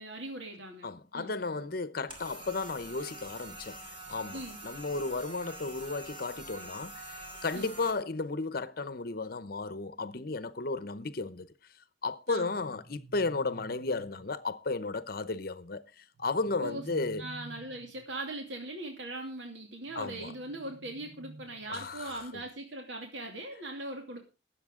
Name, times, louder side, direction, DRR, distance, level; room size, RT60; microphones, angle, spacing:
voice 1, 0.0-0.9 1.1-1.3 4.3-4.6 7.5-7.7 12.3-12.7 16.6-16.8 17.2-24.2, right 1 dB, 75° right, 2.6 m, -40 dB
voice 2, 0.8-11.5 12.0-17.2 20.0-20.3 21.7-22.2, left 3 dB, 55° left, 0.8 m, -34 dB
sound 1, 2.1-7.9, right 2 dB, 30° right, 4.5 m, -45 dB
sound 2, 12.4-14.4 16.1-18.1 19.9-21.8, right 2 dB, 55° right, 4.7 m, -51 dB
21.0 x 8.0 x 3.7 m
head